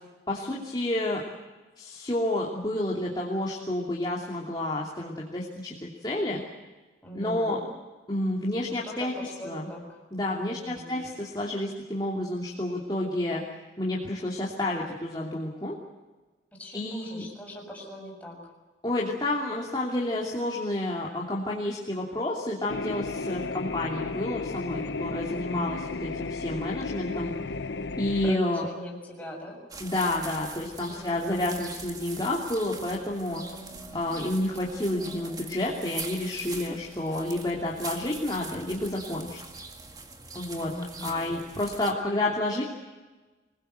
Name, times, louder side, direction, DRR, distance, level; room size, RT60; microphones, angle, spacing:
voice 1, 0.3-1.2 1.8-6.4 7.1-7.6 8.1-9.1 9.4-9.7 10.1-13.4 13.8-15.8 16.7-17.2 18.8-27.3 28.0-28.6 29.8-33.4 33.9-39.4 40.3-40.7 41.0-42.6, left 1 dB, 25° left, -4 dB, 2.8 m, -30 dB
voice 2, 7.0-7.7 8.6-10.0 10.3-10.9 16.6-18.4 25.3-25.7 28.2-29.6 30.9-31.5 33.3-34.1 40.6-41.3, equal, 10° left, -1 dB, 6.7 m, -41 dB
sound 1, 22.7-28.4, left 3 dB, 85° left, 0.8 m, -34 dB
sound 2, 29.7-41.9, right 3 dB, 20° right, 2.1 m, -42 dB
25.0 x 21.0 x 8.1 m, 1.2 s
head